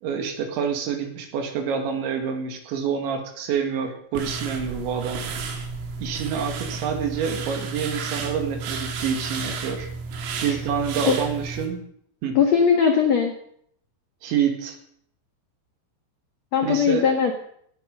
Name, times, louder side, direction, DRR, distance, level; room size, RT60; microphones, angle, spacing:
voice 1, 0.0-5.2 6.0-9.9 10.4-11.8 12.2-12.4 14.2-14.8 16.6-17.0, right 7 dB, 70° right, 5 dB, 4.3 m, -27 dB
sound 1, 4.2-11.7, right 4 dB, 85° right, 4.8 m, -32 dB
voice 2, 12.3-13.3 16.5-17.3, left 7 dB, 85° left, 4 dB, 1.5 m, -19 dB
19.0 x 13.5 x 5.5 m, 0.67 s
omnidirectional pair, 5.6 m